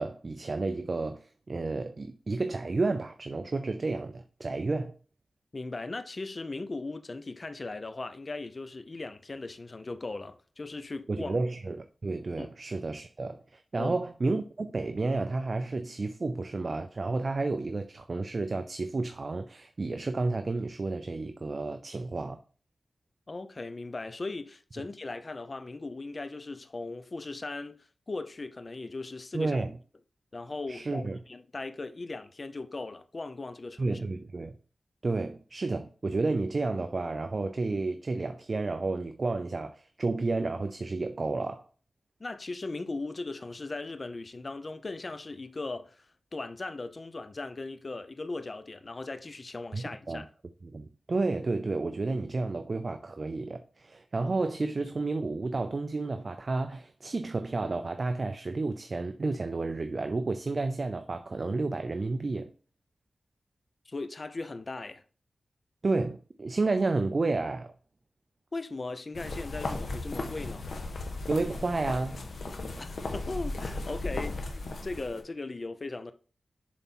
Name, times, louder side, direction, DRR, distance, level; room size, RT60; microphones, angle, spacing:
voice 1, 0.0-4.9 11.1-22.4 29.3-29.7 30.7-31.2 33.8-34.6 35.0-41.7 49.7-50.2 50.6-62.5 65.8-67.7 71.3-72.2, right 3 dB, 50° right, 0.5 m, -31 dB
voice 2, 5.5-11.4 12.4-12.5 13.8-13.9 23.3-29.6 30.3-34.0 42.2-50.3 63.9-65.0 68.5-70.7 72.8-76.1, left 3 dB, 45° left, 0.6 m, -38 dB
sound 1, 69.2-75.2, left 2 dB, 80° left, 1.3 m, -36 dB
7.1 x 4.2 x 4.3 m
wide cardioid pair, 80°, 0 cm